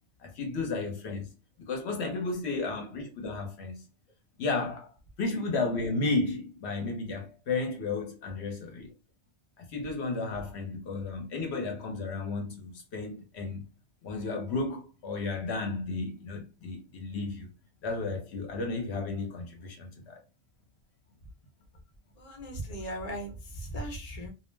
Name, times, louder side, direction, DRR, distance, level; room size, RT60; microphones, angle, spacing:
voice 1, 0.2-1.3 1.6-3.8 4.4-4.9 5.2-8.9 9.6-13.6 14.0-17.5 17.8-20.2, left 3 dB, 75° left, 0.9 m, -33 dB
voice 2, 22.2-24.3, right 1 dB, 40° left, 0.8 m, -38 dB
2.4 x 2.0 x 3.2 m
omnidirectional pair, 1.2 m